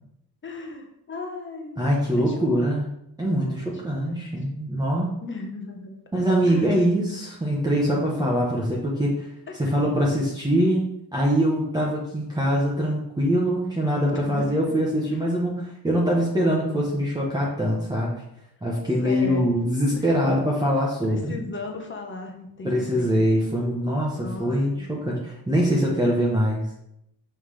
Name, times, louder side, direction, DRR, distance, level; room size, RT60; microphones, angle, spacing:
voice 1, 0.4-1.8 2.2-2.4 4.1-4.2 5.2-6.0 6.4-6.8 7.8-8.3 9.5-9.7 14.1-14.8 15.1-15.2 19.0-19.5 19.9-20.5 21.0-23.2 24.2-24.9, left 3 dB, 30° left, 3 dB, 1.1 m, -37 dB
voice 2, 1.8-2.9 3.2-5.1 6.1-9.3 9.6-18.2 18.6-21.4 22.6-26.6, equal, 10° right, -4 dB, 1.1 m, -23 dB
5.7 x 5.6 x 3.3 m, 0.79 s
cardioid pair, 125°, 39 cm